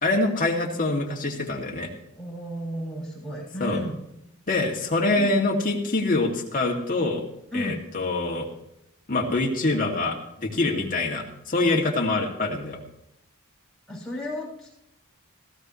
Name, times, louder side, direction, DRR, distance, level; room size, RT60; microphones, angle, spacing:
voice 1, 0.0-1.9 3.6-3.8 4.5-7.2 7.5-8.5 9.1-12.8, left 2 dB, 40° left, 0 dB, 2.4 m, -25 dB
voice 2, 2.2-4.0 5.1-5.4 7.5-7.8 13.9-14.7, equal, ahead, -4 dB, 6.6 m, -33 dB
17.0 x 15.0 x 3.2 m, 0.83 s
head